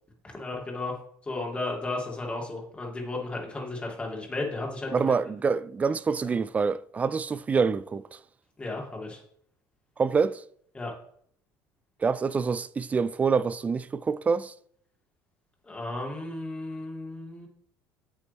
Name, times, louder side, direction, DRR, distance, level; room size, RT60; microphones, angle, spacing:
voice 1, 0.3-0.9 1.2-5.1 6.2-6.3 8.6-9.2 10.7-10.9 15.6-17.5, left 2 dB, 15° left, 2.7 m, -34 dB
voice 2, 4.9-8.2 10.0-10.4 12.0-14.5, right 5 dB, 20° right, 0.4 m, -26 dB
8.3 x 8.2 x 3.6 m
cardioid pair, 130°, 7 cm